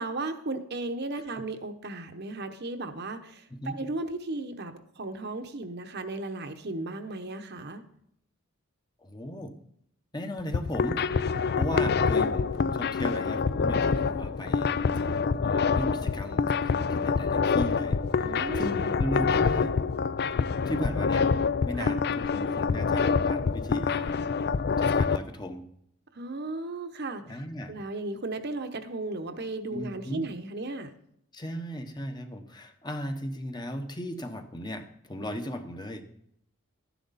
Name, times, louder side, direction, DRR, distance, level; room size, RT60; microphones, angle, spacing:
voice 1, 0.0-7.8 18.2-18.8 21.7-22.0 26.1-27.4 27.7-30.9, right 2 dB, 50° right, 7 dB, 1.0 m, -35 dB
voice 2, 9.0-9.5 10.1-11.0 11.5-14.7 15.0-19.7 20.7-21.3 21.6-24.3 24.8-25.6 27.3-27.7 29.7-30.3 31.3-36.0, equal, 20° left, 6 dB, 1.0 m, -36 dB
sound 1, 10.4-25.2, left 5 dB, 50° left, 0.4 m, -26 dB
12.5 x 10.5 x 4.1 m, 0.71 s
head